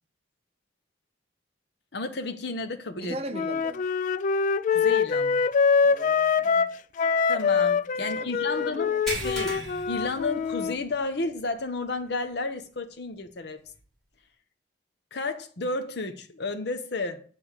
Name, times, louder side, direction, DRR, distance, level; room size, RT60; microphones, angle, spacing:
voice 1, 1.9-3.2 4.7-5.4 7.3-13.6 15.1-17.2, left 3 dB, 65° left, 0.9 m, -32 dB
voice 2, 2.9-3.9 5.8-6.7 8.0-9.5, right 1 dB, 35° right, 0.7 m, -41 dB
Wind instrument woodwind instrument, 3.3-10.7, left 5 dB, 45° left, 0.3 m, -24 dB
sound 1, 9.1-10.9 11.3-11.5 12.0-12.1 13.7-13.8, right 1 dB, ahead, 2.5 m, -36 dB
9.0 x 3.5 x 6.5 m
head